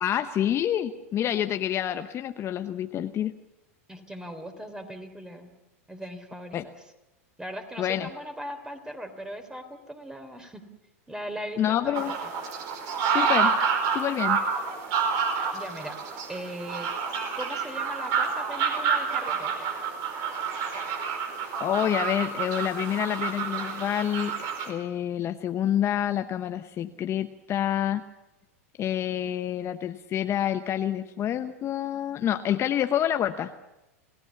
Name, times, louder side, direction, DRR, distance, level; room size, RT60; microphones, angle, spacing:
voice 1, 0.0-3.3 6.5-6.6 7.8-8.1 11.6-12.1 13.1-13.5 13.9-14.4 20.7-20.9 21.6-24.3 24.7-28.0 28.8-33.5, left 10 dB, 35° left, 8 dB, 0.9 m, -27 dB
voice 2, 3.9-5.5 5.9-6.7 7.4-10.6 11.1-12.1 15.5-16.0 16.3-16.9 17.3-19.7, equal, 10° right, 7 dB, 3.4 m, -39 dB
sound 1, 11.9-24.7, right 6 dB, 50° right, 4.8 m, -28 dB
27.5 x 17.5 x 7.1 m, 0.97 s
hypercardioid pair, 100°, 8 cm